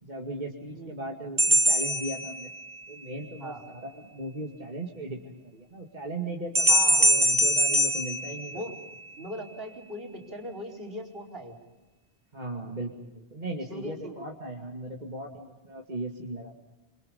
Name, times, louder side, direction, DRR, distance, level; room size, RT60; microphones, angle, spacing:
voice 1, 0.0-2.5 2.9-6.7 7.0-8.6 12.3-16.6, right 1 dB, 40° right, -1 dB, 2.5 m, -37 dB
voice 2, 0.7-1.0 3.4-3.6 6.7-7.1 8.5-8.8 9.2-11.6 13.7-14.2, equal, 60° right, 3 dB, 5.1 m, -39 dB
sound 1, 1.4-2.9 6.5-9.1, equal, 20° right, 1.5 m, -23 dB
28.0 x 26.5 x 5.4 m, 1.1 s
omnidirectional pair, 1.1 m